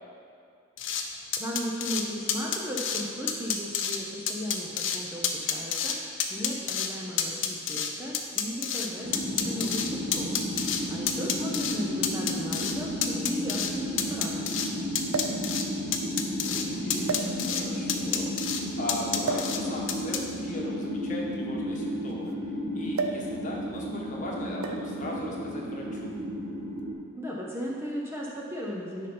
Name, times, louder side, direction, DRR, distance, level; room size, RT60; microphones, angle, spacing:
sound 1, 0.8-1.0 1.3-2.0 2.3-3.0 3.3-4.0 4.3-5.0 5.2-6.0 6.2-6.9 7.2-8.9 9.1-10.8 11.1-11.8 12.0-12.8 13.0-13.7 14.0-14.7 15.0-15.6 15.9-16.7 16.9-17.6 17.9-18.6 18.9-19.6 19.9-20.2, left 8 dB, 60° left, 0.7 m, -29 dB
voice 1, 1.4-10.4 10.9-14.5 27.2-29.1, equal, 10° right, -4 dB, 0.8 m, -36 dB
sound 2, 9.0-26.9, equal, 60° right, 1.6 m, -33 dB
voice 2, 11.6-12.3 16.4-22.5 22.7-26.1, left 1 dB, 35° left, -2 dB, 1.2 m, -39 dB
sound 3, 12.9-13.0 15.1-15.5 16.3-16.5 17.0-17.7 19.2-19.6 20.7-22.3 22.9-23.3 23.6-23.9 24.6-25.0 26.0-26.2, right 4 dB, 80° right, 0.5 m, -33 dB
9.7 x 5.5 x 4.4 m, 2.4 s
head